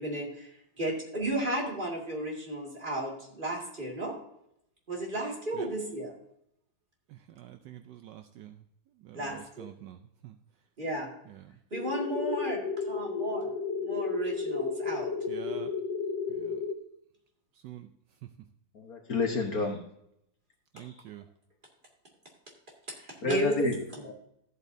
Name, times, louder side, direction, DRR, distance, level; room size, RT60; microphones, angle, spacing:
voice 1, 0.0-4.1 4.9-6.1 9.1-9.7 10.8-11.1 11.7-13.5 13.8-15.1 22.9-24.0, right 1 dB, 25° right, 2.2 m, -34 dB
voice 2, 7.1-8.6 9.0-10.4 11.3-11.6 15.3-15.7 16.3-16.6 17.6-17.9 18.2-18.3 20.7-21.3, right 12 dB, 75° right, 1.1 m, -47 dB
sound 1, 11.7-16.7, left 5 dB, 70° left, 1.5 m, -32 dB
voice 3, 18.7-19.8 20.8-20.9 23.2-23.8 24.0-24.1, left 3 dB, 50° left, 1.5 m, -30 dB
13.5 x 8.2 x 2.7 m
omnidirectional pair, 2.1 m